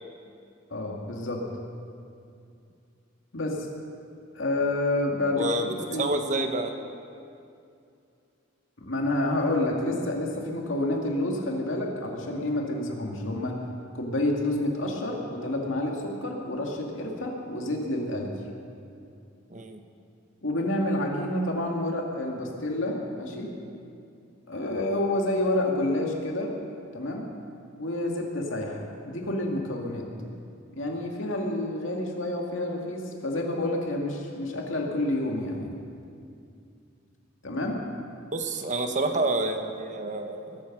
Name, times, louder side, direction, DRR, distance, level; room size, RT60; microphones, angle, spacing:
voice 1, 0.7-1.5 3.3-3.7 4.3-6.1 8.8-13.6 13.9-18.3 20.4-23.5 24.5-26.5 26.9-27.3 27.8-30.1 30.7-35.7 37.4-37.8, left 1 dB, 75° left, 0 dB, 2.3 m, -29 dB
voice 2, 5.4-5.7 6.0-6.7 19.5-19.8 38.3-40.6, right 2 dB, 40° right, 6 dB, 1.1 m, -28 dB
20.5 x 9.5 x 6.1 m, 2.5 s
head